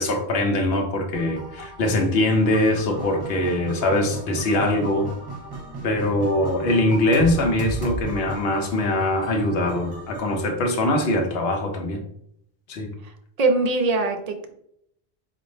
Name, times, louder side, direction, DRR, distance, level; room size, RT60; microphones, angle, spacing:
voice 1, 0.0-5.1 5.8-12.0 12.7-12.9, left 1 dB, 75° left, 2 dB, 0.9 m, -22 dB
sound 1, 1.1-10.4, right 1 dB, 25° right, 1.0 m, -35 dB
voice 2, 13.4-14.5, right 3 dB, 50° right, 5 dB, 0.5 m, -22 dB
4.0 x 2.5 x 3.1 m, 0.71 s
omnidirectional pair, 1.0 m